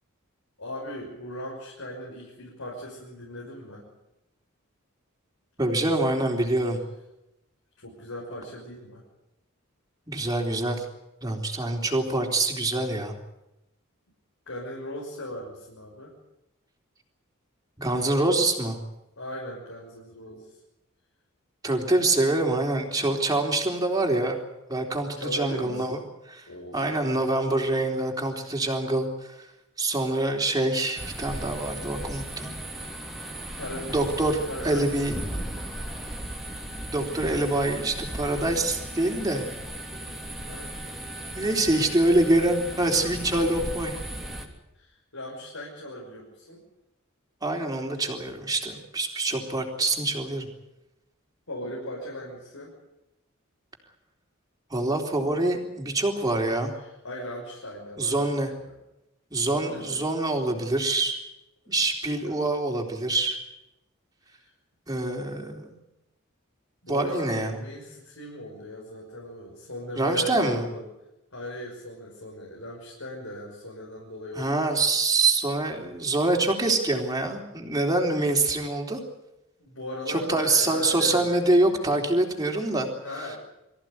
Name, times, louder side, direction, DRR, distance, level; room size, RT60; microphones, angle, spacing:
voice 1, 0.6-3.8 7.8-9.0 14.5-16.1 19.2-20.6 25.1-26.0 26.5-26.8 27.1-27.2 33.6-34.0 34.5-34.9 35.9-36.0 40.4-40.7 44.7-46.6 51.5-52.7 56.8-58.5 59.4-60.0 62.2-62.4 64.2-64.5 66.8-70.8 71.3-74.8 79.6-81.5 82.9-83.4, equal, 85° left, -2 dB, 6.1 m, -38 dB
voice 2, 5.6-6.8 10.1-10.9 11.2-13.1 17.8-18.8 21.6-24.4 24.7-26.0 26.3-26.4 26.7-29.4 29.8-32.6 33.7-35.1 36.9-39.4 41.4-43.9 47.4-50.5 54.7-56.7 58.0-58.5 59.3-61.2 61.7-63.4 64.9-65.7 66.9-67.6 70.0-70.6 74.3-79.0 80.1-82.9, right 2 dB, 20° right, 2 dB, 3.7 m, -25 dB
sound 1, 31.0-44.5, right 1 dB, ahead, 3.3 m, -36 dB
24.0 x 15.0 x 9.6 m, 0.91 s
head